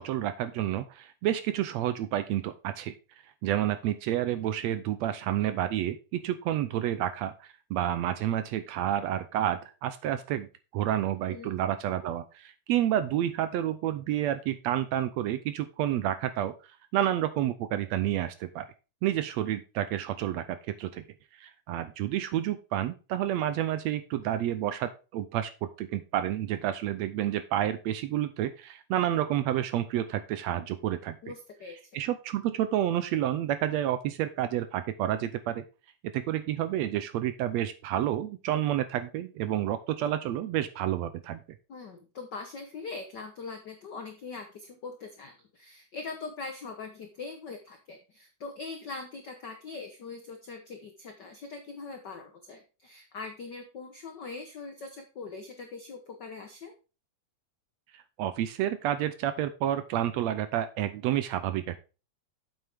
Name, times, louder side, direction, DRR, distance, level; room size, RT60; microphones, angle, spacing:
voice 1, 0.0-2.9 3.4-10.5 10.7-16.5 16.9-18.6 19.0-21.0 21.4-31.2 31.9-35.6 36.1-41.4 58.2-61.8, right 12 dB, 75° right, 11 dB, 1.7 m, -29 dB
voice 2, 31.2-31.8 41.7-56.7, left 4 dB, 75° left, 5 dB, 1.0 m, -42 dB
8.1 x 7.9 x 3.5 m, 0.32 s
omnidirectional pair, 3.4 m